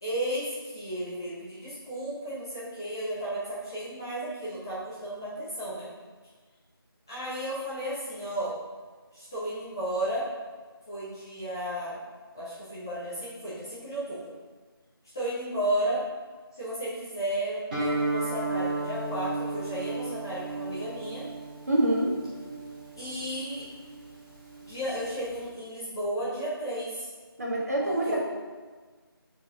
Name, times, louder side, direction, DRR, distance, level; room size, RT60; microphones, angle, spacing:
voice 1, 0.0-5.9 7.1-8.6 9.1-10.3 10.9-12.0 12.3-14.3 15.1-16.0 16.5-21.3 23.0-23.6 24.6-27.1 27.8-28.2, right 1 dB, 10° left, -11 dB, 0.6 m, -33 dB
Guitar, 17.7-25.5, right 2 dB, 20° right, 1.8 m, -34 dB
voice 2, 21.7-22.2 27.4-28.2, right 1 dB, 40° right, -3 dB, 1.3 m, -25 dB
8.1 x 4.2 x 3.6 m, 1.4 s
figure-of-eight pair, 165°, 13 cm